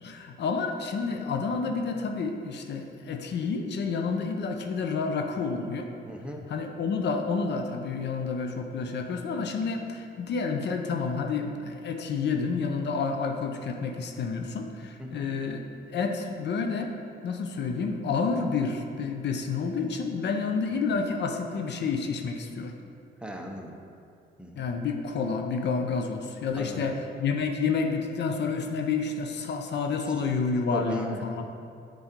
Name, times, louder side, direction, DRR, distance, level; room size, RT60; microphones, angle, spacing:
voice 1, 0.0-5.9 6.5-15.6 15.9-16.9 17.2-22.7 24.6-31.5, left 4 dB, 60° left, 4 dB, 0.6 m, -29 dB
voice 2, 6.1-6.4 15.0-15.2 20.7-20.8 23.2-23.8 24.4-24.7 26.6-26.9 30.7-31.5, equal, 5° right, 1 dB, 0.7 m, -38 dB
7.1 x 3.9 x 5.2 m, 2.4 s
cardioid pair, 90°, 20 cm